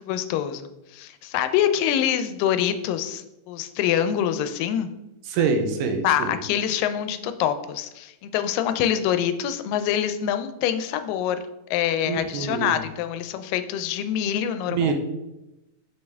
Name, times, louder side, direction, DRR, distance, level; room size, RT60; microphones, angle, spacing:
voice 1, 0.0-4.9 6.0-11.4 11.7-14.9, left 10 dB, 90° left, 10 dB, 2.2 m, -25 dB
voice 2, 5.3-6.4 12.1-12.8 14.7-14.9, right 5 dB, 85° right, 5 dB, 2.3 m, -25 dB
6.3 x 5.4 x 3.4 m, 0.96 s
omnidirectional pair, 3.8 m